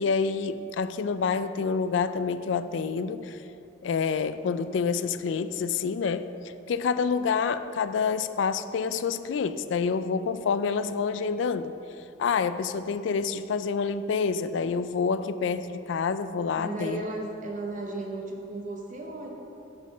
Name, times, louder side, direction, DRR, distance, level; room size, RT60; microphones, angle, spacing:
voice 1, 0.0-3.4 3.8-6.3 6.7-11.7 12.2-17.0, left 5 dB, 70° left, 12 dB, 0.3 m, -27 dB
voice 2, 16.6-19.3, right 2 dB, 40° right, 1 dB, 1.0 m, -35 dB
11.0 x 4.4 x 6.1 m, 2.9 s
head